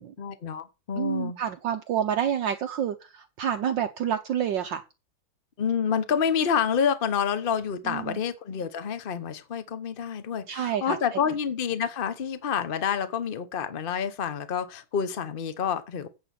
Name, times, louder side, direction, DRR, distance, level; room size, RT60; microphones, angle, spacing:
voice 1, 0.2-1.4 5.6-16.1, left 7 dB, 40° left, 0.8 m, -28 dB
voice 2, 1.0-4.8 7.9-8.2 10.5-11.0, right 9 dB, 65° right, 1.5 m, -28 dB
8.8 x 8.4 x 5.9 m
omnidirectional pair, 2.3 m